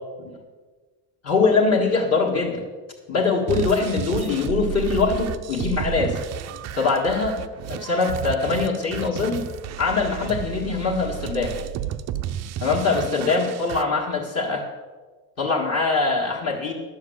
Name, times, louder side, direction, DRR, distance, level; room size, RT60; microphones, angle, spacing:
voice 1, 1.2-2.6 3.1-6.2 6.7-7.4 7.7-9.4 9.8-11.6 12.6-14.7 15.4-16.7, left 4 dB, 35° left, -2 dB, 1.8 m, -22 dB
sound 1, 3.5-13.8, right 11 dB, 40° right, 0.5 m, -32 dB
11.5 x 7.2 x 7.9 m, 1.4 s
cardioid pair, 175°, 42 cm